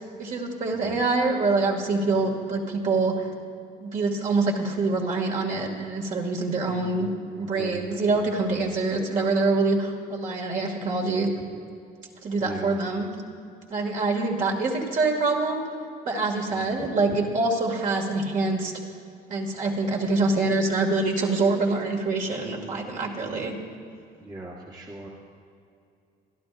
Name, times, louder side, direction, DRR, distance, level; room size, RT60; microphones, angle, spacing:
voice 1, 0.2-3.3 3.8-7.1 7.4-11.3 12.2-13.1 13.7-15.6 16.1-18.7 19.3-23.5, right 3 dB, 50° right, 0 dB, 2.4 m, -25 dB
voice 2, 0.7-1.0 6.6-8.8 12.4-12.8 16.5-16.7 24.2-25.1, right 2 dB, 25° right, -3 dB, 1.5 m, -41 dB
26.0 x 12.0 x 2.6 m, 2.5 s
cardioid pair, 110°, 17 cm